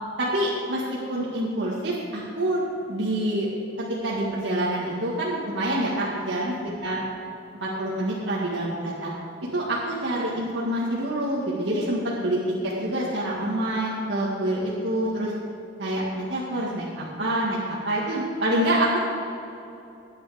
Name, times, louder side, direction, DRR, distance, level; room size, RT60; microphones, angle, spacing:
voice 1, 0.2-0.8 1.1-2.6 2.9-3.5 4.0-7.0 7.6-9.1 9.5-15.3 15.8-19.0, right 1 dB, 75° right, -7 dB, 2.0 m, -26 dB
14.0 x 9.6 x 5.2 m, 2.9 s
head